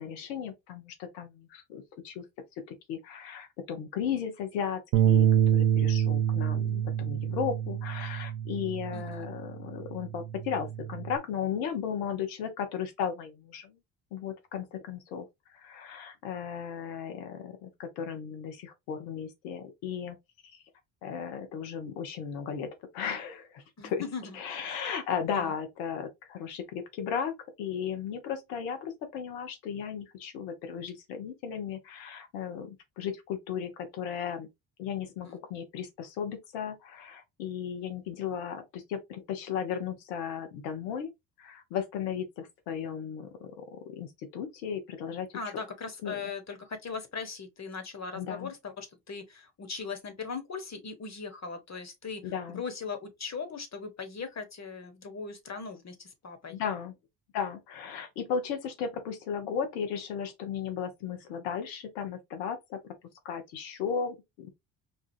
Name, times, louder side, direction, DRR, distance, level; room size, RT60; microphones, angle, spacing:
voice 1, 0.0-2.2 2.7-13.8 14.1-20.2 20.5-20.6 21.0-24.0 24.3-34.5 34.8-41.1 41.4-45.5 46.0-46.2 48.1-48.5 52.2-52.6 56.5-56.9 57.3-62.8 63.2-64.5, left 7 dB, 85° left, 1.0 m, -35 dB
Bass guitar, 4.9-9.4 9.8-11.2, right 10 dB, 70° right, 0.7 m, -27 dB
voice 2, 8.9-9.3 23.8-24.4 25.3-25.5 35.2-35.4 45.3-52.2 52.5-56.6, left 5 dB, 30° left, 1.2 m, -39 dB
4.7 x 2.3 x 2.6 m
hypercardioid pair, 55°, 50 cm